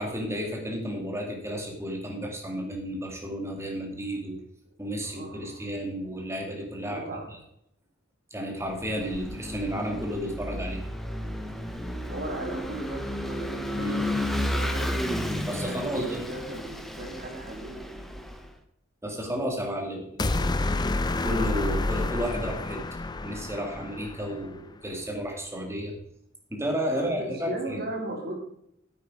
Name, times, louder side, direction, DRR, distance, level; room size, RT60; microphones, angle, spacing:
voice 1, 0.0-4.4 4.8-7.0 8.3-10.8 13.8-14.0 15.5-16.2 19.0-20.5 21.2-22.8 23.2-25.9 26.5-27.8, equal, 15° right, 1 dB, 2.4 m, -32 dB
voice 2, 5.0-5.6 6.9-7.4 12.1-15.1 15.6-17.9 26.9-28.3, right 1 dB, 50° right, 0 dB, 3.4 m, -37 dB
Vehicle / Engine, 8.7-18.5, left 1 dB, ahead, 0.9 m, -32 dB
sound 1, 20.2-24.5, left 2 dB, 20° left, 0.5 m, -29 dB
9.7 x 8.4 x 4.9 m, 0.76 s
head